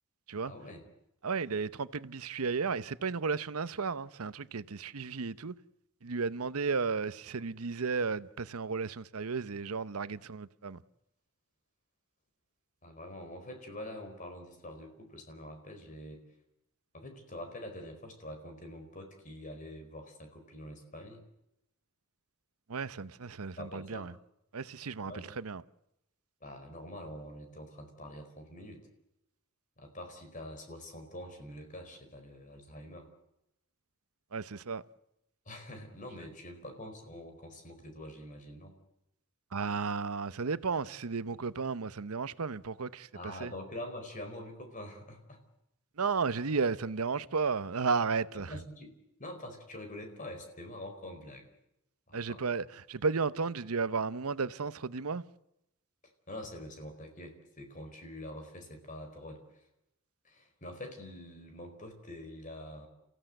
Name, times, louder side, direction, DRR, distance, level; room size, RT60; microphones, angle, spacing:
voice 1, 0.4-0.8 12.8-16.2 16.9-21.2 23.6-24.1 25.0-25.3 26.4-28.9 29.8-33.1 35.4-38.8 43.1-45.4 48.5-51.5 52.1-52.4 56.3-59.6 60.2-62.9, left 1 dB, 35° left, 4.6 m, -45 dB
voice 2, 1.2-5.5 6.0-10.8 22.7-24.1 24.5-25.6 34.3-34.8 39.5-43.5 46.0-48.6 52.1-55.2, right 5 dB, 90° right, 0.8 m, -33 dB
29.5 x 15.5 x 7.9 m
head